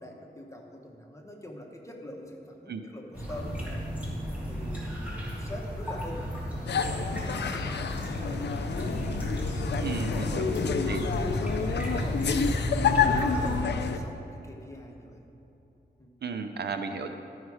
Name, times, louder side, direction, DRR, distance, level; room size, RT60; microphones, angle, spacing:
voice 1, 0.0-3.9 4.4-8.8 9.4-9.7 10.1-12.7 13.0-15.2 16.0-16.1, left 1 dB, 15° left, 0 dB, 1.1 m, -44 dB
sound 1, 3.1-13.6, equal, 10° right, 2.1 m, -34 dB
sound 2, 6.7-14.0, left 5 dB, 75° left, 0.5 m, -29 dB
voice 2, 9.8-10.5 10.9-11.0 13.4-13.6 16.2-17.1, right 5 dB, 70° right, 7 dB, 0.6 m, -34 dB
12.5 x 4.7 x 4.8 m, 3.0 s
wide cardioid pair, 90°, 18 cm